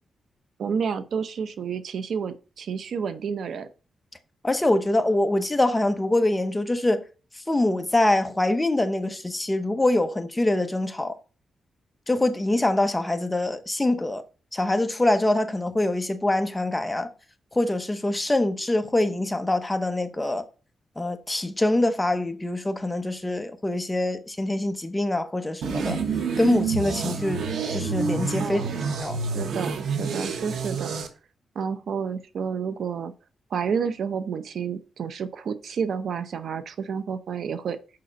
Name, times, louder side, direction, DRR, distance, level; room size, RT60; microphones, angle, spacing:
voice 1, 0.6-3.7 28.4-28.8 29.3-30.9 31.6-33.1 33.5-37.8, right 6 dB, 70° right, 0.7 m, -30 dB
voice 2, 4.4-7.0 7.5-11.2 12.1-14.2 14.5-17.1 17.5-20.4 21.0-26.0 26.4-27.4 27.7-28.7 29.0-29.2, left 1 dB, 10° left, 0.9 m, -24 dB
sound 1, 25.6-31.1, right 5 dB, 90° right, 1.2 m, -28 dB
6.8 x 5.4 x 5.2 m
wide cardioid pair, 125°, 0 cm